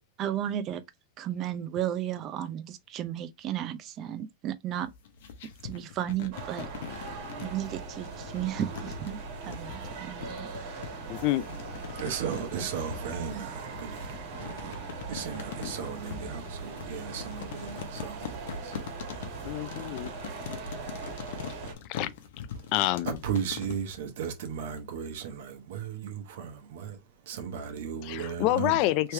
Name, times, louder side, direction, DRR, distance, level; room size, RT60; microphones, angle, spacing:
voice 1, 0.2-0.8 1.2-4.9 5.6-6.7 7.4-9.2 9.4-10.5 10.7-10.8 12.2-12.8 13.3-13.5, right 11 dB, 30° right, 0.5 m, -34 dB
sound 1, 4.8-24.0, left 8 dB, 70° left, 0.9 m, -42 dB
sound 2, 6.3-21.7, right 4 dB, 50° right, 1.7 m, -40 dB
voice 2, 11.1-11.5 19.4-20.1 21.9-22.1 22.7-23.2 28.0-29.1, left 16 dB, 45° left, 0.3 m, -27 dB
voice 3, 12.0-14.7 15.1-18.8 19.2-19.3 22.5-22.7 23.1-27.0 27.3-29.1, right 7 dB, 65° right, 1.0 m, -36 dB
3.2 x 3.1 x 3.3 m
supercardioid pair, 145°, 0 cm